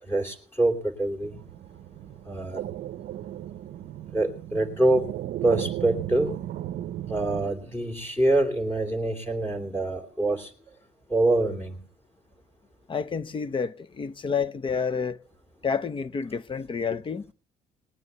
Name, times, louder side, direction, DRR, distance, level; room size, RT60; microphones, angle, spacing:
voice 1, 0.0-1.4 2.2-2.6 4.1-5.1 5.4-6.4 7.1-10.5 11.1-11.8, right 2 dB, 15° left, 2.9 m, -25 dB
sound 1, 1.2-7.5, right 12 dB, 60° right, 0.6 m, -35 dB
voice 2, 12.9-15.2 15.6-17.3, left 5 dB, 30° left, 0.7 m, -29 dB
19.5 x 9.4 x 6.8 m
cardioid pair, 110°, 17 cm